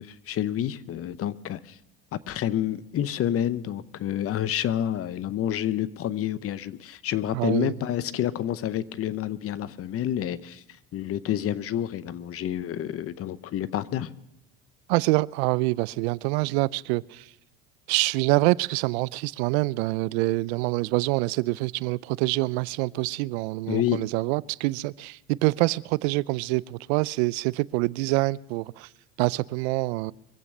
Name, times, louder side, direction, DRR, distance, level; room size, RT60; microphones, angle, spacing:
voice 1, 0.0-1.8 2.1-10.6 10.9-14.1 23.7-24.0, left 11 dB, 45° left, 16 dB, 0.8 m, -29 dB
voice 2, 7.3-7.7 14.9-17.2 17.9-28.9 29.2-30.1, right 22 dB, 80° right, 22 dB, 0.5 m, -26 dB
24.0 x 8.3 x 6.0 m, 0.87 s
supercardioid pair, 95°, 32 cm